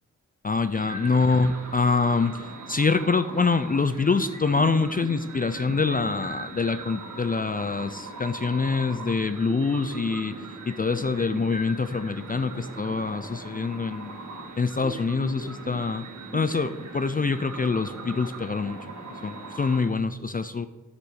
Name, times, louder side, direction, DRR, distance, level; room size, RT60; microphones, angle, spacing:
voice 1, 0.4-10.3 10.7-14.2 14.6-16.1 16.3-18.8 19.2-20.7, left 4 dB, 25° left, 11 dB, 0.5 m, -25 dB
sound 1, 0.7-19.9, right 3 dB, 60° right, 2.4 m, -40 dB
10.5 x 8.2 x 6.3 m, 1.2 s
wide cardioid pair, 90°, 31 cm